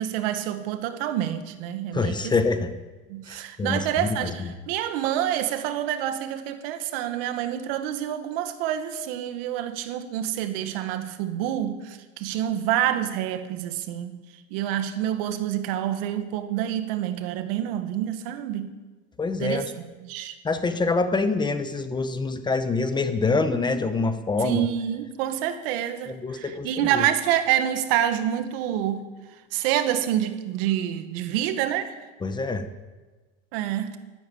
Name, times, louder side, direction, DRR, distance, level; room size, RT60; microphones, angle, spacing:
voice 1, 0.0-2.4 3.1-14.1 14.5-18.7 19.4-20.3 24.4-29.1 29.5-31.9 33.5-34.0, right 11 dB, 80° right, 1.8 m, -27 dB
voice 2, 1.9-2.7 3.3-4.2 19.2-19.7 20.4-24.7 26.1-27.0 32.2-32.7, left 3 dB, 15° left, 1.0 m, -25 dB
13.5 x 12.5 x 8.8 m
cardioid pair, 145°, 29 cm